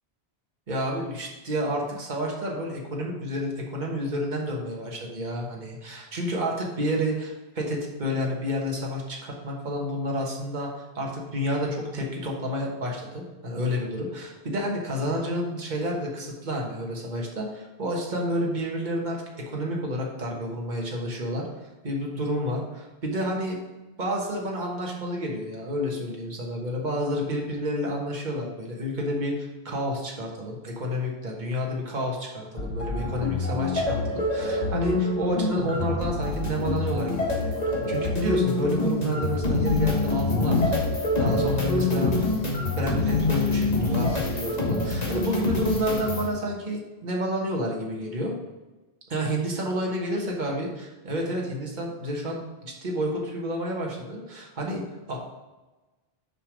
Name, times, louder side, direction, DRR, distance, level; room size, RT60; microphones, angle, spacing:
voice 1, 0.7-10.7 10.9-21.5 21.8-23.6 24.0-42.3 42.8-48.3 49.1-55.2, equal, 45° right, -1 dB, 1.5 m, -30 dB
sound 1, 32.6-46.3, left 2 dB, 40° left, 1.5 m, -26 dB
6.6 x 5.1 x 5.1 m, 1.1 s
omnidirectional pair, 1.1 m